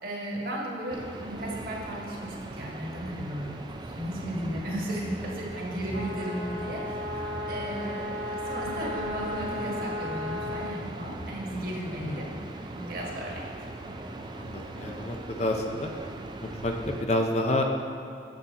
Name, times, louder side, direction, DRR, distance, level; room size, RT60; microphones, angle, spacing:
voice 1, 0.0-7.0 7.5-12.3 12.7-13.5, right 1 dB, 50° right, -3 dB, 1.5 m, -35 dB
sound 1, 0.9-17.0, right 2 dB, 25° right, 0.4 m, -40 dB
sound 2, 5.9-10.7, left 1 dB, 55° left, 1.2 m, -35 dB
voice 2, 14.3-15.9 16.4-17.6, left 1 dB, 35° left, 3 dB, 0.5 m, -29 dB
7.7 x 7.1 x 4.1 m, 2.6 s
head